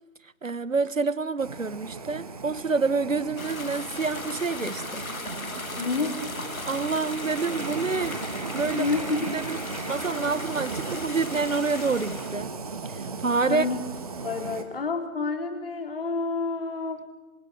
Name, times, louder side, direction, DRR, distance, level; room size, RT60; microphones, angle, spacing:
voice 1, 0.2-5.0 6.7-8.2 8.5-8.9 9.3-9.6 9.9-12.5 12.9-13.6, right 4 dB, 60° right, 1.3 m, -27 dB
sound 1, 1.4-14.6, right 4 dB, 25° right, 1.5 m, -36 dB
sound 2, 3.4-12.4, left 3 dB, 65° left, 2.2 m, -37 dB
voice 2, 5.8-6.2 8.2-8.3 8.7-9.4 13.5-13.8 14.2-17.0, left 4 dB, 40° left, 4.0 m, -29 dB
27.5 x 26.5 x 7.6 m
figure-of-eight pair, 155°, 44 cm